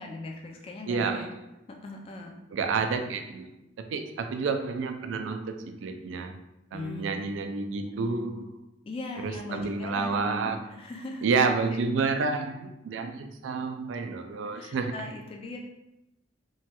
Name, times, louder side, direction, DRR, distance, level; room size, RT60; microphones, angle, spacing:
voice 1, 0.0-1.3 1.8-2.4 6.7-7.4 8.9-10.2 10.4-11.3 14.5-15.6, left 2 dB, 30° left, 1 dB, 0.3 m, -39 dB
voice 2, 0.9-1.5 2.5-3.5 3.9-6.4 6.7-8.5 9.2-10.6 11.2-14.9, right 4 dB, 90° right, 6 dB, 0.3 m, -29 dB
3.0 x 2.2 x 2.8 m, 0.92 s
head